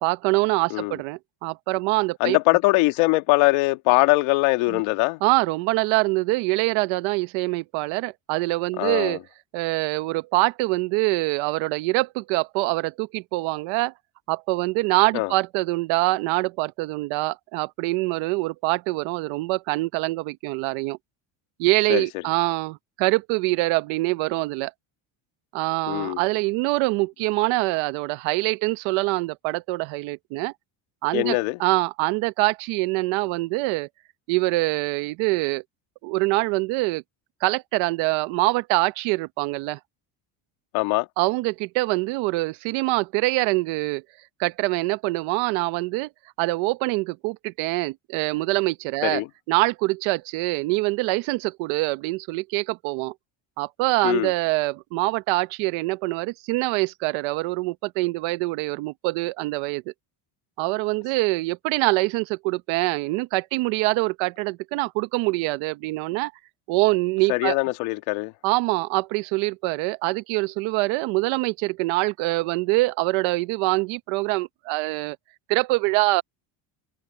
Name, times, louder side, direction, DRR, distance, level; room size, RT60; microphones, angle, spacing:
voice 1, 0.0-2.4 4.7-4.8 5.2-9.2 9.5-13.9 14.3-21.0 21.6-24.7 25.5-30.5 31.0-33.9 34.3-35.6 36.0-37.0 37.4-39.8 41.2-44.0 44.4-46.1 46.4-49.2 49.5-53.1 53.6-59.8 60.6-66.3 66.7-67.6 68.4-75.2 75.5-76.2, right 22 dB, 80° right, 1.0 m, -24 dB
voice 2, 2.2-5.2 8.8-9.2 15.1-15.3 21.9-22.0 25.9-26.2 31.1-31.6 40.7-41.1 49.0-49.3 54.0-54.3 67.3-68.3, left 22 dB, 90° left, 1.8 m, -22 dB
cardioid pair, 165°, 46 cm